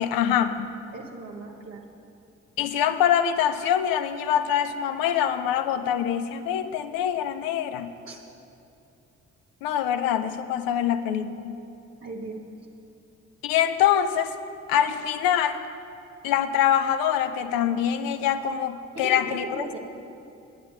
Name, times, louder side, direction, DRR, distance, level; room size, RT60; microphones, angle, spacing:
voice 1, 0.0-0.8 2.6-7.9 9.6-11.6 13.4-14.3 14.7-15.6 16.2-19.8, left 9 dB, 60° left, 11 dB, 0.7 m, -24 dB
voice 2, 0.9-1.8 8.0-8.3 12.0-12.4 18.9-19.8, right 3 dB, 35° right, 0 dB, 1.3 m, -37 dB
11.0 x 10.5 x 5.7 m, 2.6 s
figure-of-eight pair, 40°, 39 cm